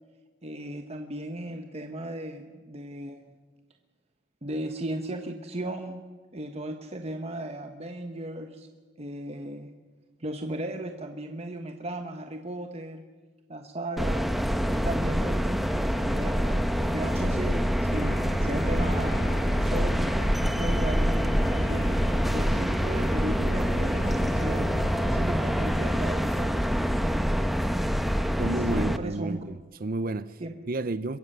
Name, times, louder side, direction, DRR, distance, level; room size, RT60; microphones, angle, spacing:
voice 1, 0.4-3.3 4.4-6.0 6.3-8.7 9.0-9.7 10.2-13.0 13.5-14.2 14.6-18.1 18.4-19.2 19.6-21.9 22.3-24.7 25.1-26.8 28.5-29.4 30.4-30.5, right 1 dB, 35° right, 1.3 m, -36 dB
sound 1, 14.0-29.0, equal, ahead, 1.0 m, -26 dB
sound 2, 17.9-25.2, equal, 65° left, 3.0 m, -38 dB
voice 2, 28.4-30.4 30.7-31.2, right 2 dB, 50° right, 0.7 m, -31 dB
23.5 x 22.5 x 6.8 m
head